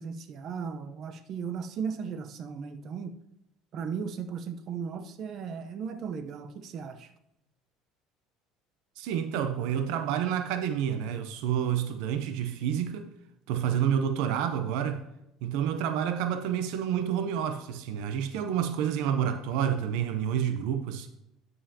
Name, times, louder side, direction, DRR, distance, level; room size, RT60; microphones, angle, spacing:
voice 1, 0.0-3.1 3.7-7.1, right 6 dB, 50° right, 0.8 m, -36 dB
voice 2, 9.0-13.1 13.5-15.0 15.4-21.1, right 9 dB, 80° right, 0.7 m, -29 dB
12.5 x 5.5 x 2.9 m
cardioid pair, 130°, 0 cm